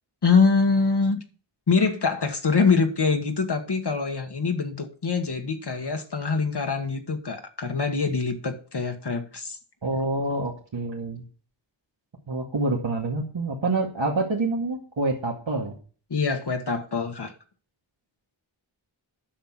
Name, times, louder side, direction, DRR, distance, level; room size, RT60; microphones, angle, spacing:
voice 1, 0.2-1.2 1.7-9.6 16.1-17.3, left 4 dB, 55° left, 1.6 m, -24 dB
voice 2, 9.8-11.2 12.3-15.8, right 2 dB, 70° right, 2.2 m, -27 dB
10.0 x 6.6 x 5.8 m
wide cardioid pair, 75°, 47 cm